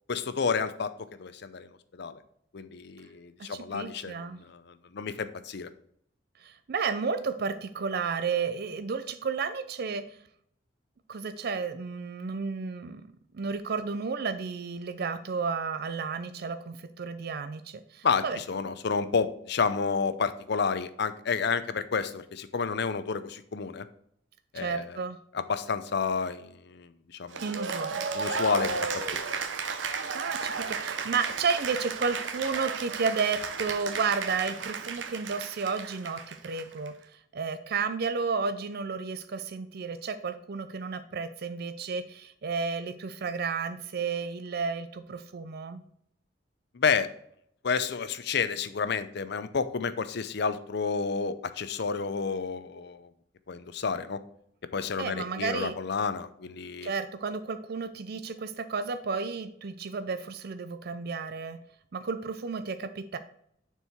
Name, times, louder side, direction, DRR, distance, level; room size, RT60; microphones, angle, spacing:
voice 1, 0.1-0.9 1.2-2.2 2.5-5.7 18.0-23.9 24.5-25.0 25.3-27.4 28.1-29.4 46.7-47.1 47.6-53.1 53.5-54.2 54.7-56.9, left 5 dB, 65° left, 13 dB, 0.6 m, -30 dB
voice 2, 3.4-4.4 6.4-10.1 11.1-13.0 13.3-18.4 24.5-25.2 27.4-28.1 30.1-36.9 37.3-45.8 55.0-55.8 56.8-61.6 61.9-63.2, right 5 dB, 55° right, 11 dB, 0.5 m, -32 dB
Cheering / Applause, 27.3-36.9, right 5 dB, 80° right, 0.8 m, -34 dB
6.7 x 4.6 x 4.5 m, 0.69 s
head